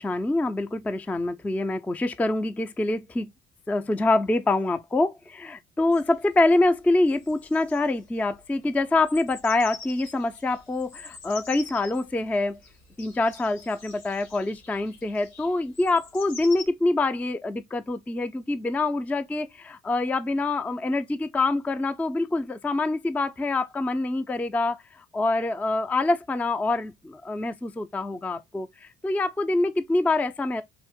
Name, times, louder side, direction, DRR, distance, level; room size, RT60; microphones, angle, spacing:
voice 1, 0.0-3.3 3.7-12.6 13.0-30.6, left 2 dB, 5° left, 0.4 m, -25 dB
sound 1, 5.9-16.7, left 4 dB, 85° left, 1.7 m, -46 dB
3.5 x 2.5 x 3.5 m
hypercardioid pair, 60°, 33 cm